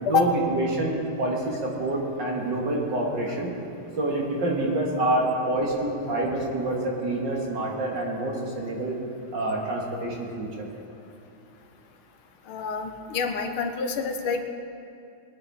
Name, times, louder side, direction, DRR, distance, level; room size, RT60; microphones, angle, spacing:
voice 1, 0.0-3.5 4.0-9.0 9.3-10.7, right 1 dB, 55° right, -2 dB, 2.5 m, -27 dB
voice 2, 12.5-14.4, left 5 dB, 75° left, 6 dB, 1.7 m, -27 dB
21.0 x 9.7 x 4.2 m, 2.7 s
omnidirectional pair, 2.4 m